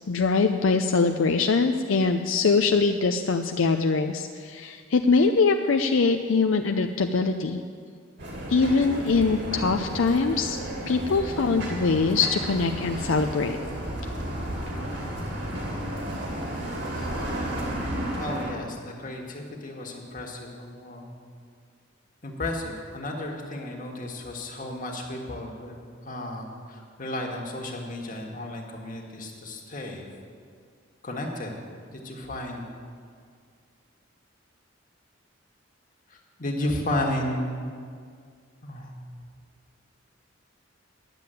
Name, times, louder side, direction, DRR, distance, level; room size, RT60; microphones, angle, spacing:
voice 1, 0.1-7.6 8.5-10.6 10.9-13.6, left 4 dB, 75° left, 5 dB, 0.5 m, -23 dB
sound 1, 8.2-18.5, right 1 dB, 60° right, 2.4 m, -32 dB
voice 2, 18.2-21.1 22.2-25.8 26.0-30.1 31.0-31.5 31.9-32.6 36.1-37.6 38.6-38.9, left 1 dB, 40° left, 0 dB, 1.7 m, -33 dB
10.5 x 7.5 x 9.1 m, 2.1 s
head